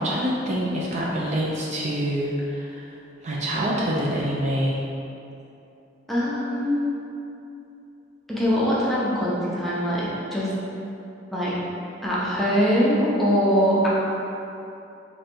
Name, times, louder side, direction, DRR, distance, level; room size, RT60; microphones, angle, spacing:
voice 1, 0.0-2.7 3.2-4.8, equal, 40° right, -4 dB, 0.4 m, -25 dB
voice 2, 6.1-6.9 8.3-10.5 11.3-11.5 12.0-13.9, equal, ahead, -8 dB, 0.6 m, -22 dB
3.2 x 2.5 x 4.4 m, 2.8 s
head